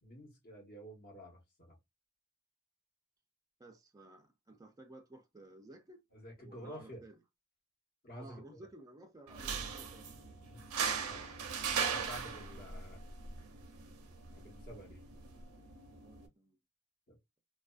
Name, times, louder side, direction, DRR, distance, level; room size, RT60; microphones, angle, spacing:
voice 1, 0.0-1.8 6.1-7.0 8.0-8.6 10.5-10.6 11.0-13.0 14.3-15.0 17.1-17.2, equal, 45° left, 1.1 m, -51 dB
voice 2, 3.6-6.0 6.4-7.2 8.1-10.1 16.0-16.6, right 2 dB, 15° right, 0.4 m, -55 dB
sound 1, 9.3-16.3, right 6 dB, 80° right, 0.5 m, -39 dB
2.4 x 2.2 x 2.3 m
head